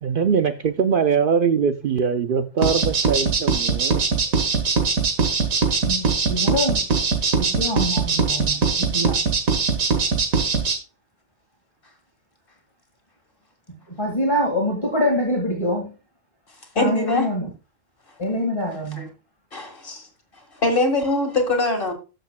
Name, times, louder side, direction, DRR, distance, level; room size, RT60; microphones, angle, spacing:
voice 1, 0.0-4.0, right 6 dB, 60° right, 0.5 m, -22 dB
sound 1, 2.6-10.7, right 4 dB, 90° right, 1.9 m, -21 dB
voice 2, 5.8-6.9 7.4-9.2 13.9-15.9 16.8-17.5 18.2-19.1, left 1 dB, 20° left, 1.9 m, -25 dB
voice 3, 16.8-17.3 19.0-19.1 19.5-20.0 20.6-21.9, left 2 dB, 40° left, 1.9 m, -22 dB
12.5 x 6.9 x 2.2 m
omnidirectional pair, 1.4 m